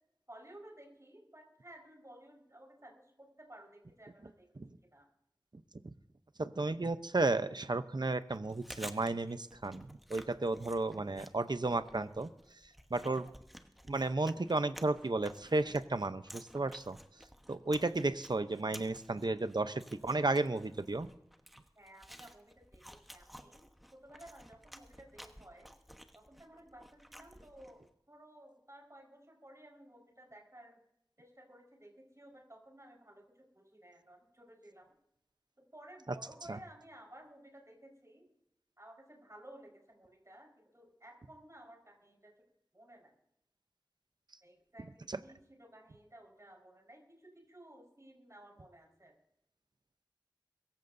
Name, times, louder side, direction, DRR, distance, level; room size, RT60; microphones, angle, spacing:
voice 1, 0.3-5.1 21.8-22.8 23.1-25.7 26.1-30.8 31.2-34.9 35.6-38.2 38.8-42.3 42.7-43.1 44.4-49.1, right 1 dB, 40° right, 0 dB, 4.6 m, -56 dB
voice 2, 6.4-12.3 12.6-13.3 13.9-17.0 17.5-21.1 36.5-36.6 45.1-45.2, right 2 dB, 65° right, 11 dB, 0.7 m, -33 dB
Chewing mastication, 8.3-27.9, equal, ahead, 1.1 m, -54 dB
23.0 x 14.5 x 2.7 m, 0.80 s
wide cardioid pair, 45°, 8 cm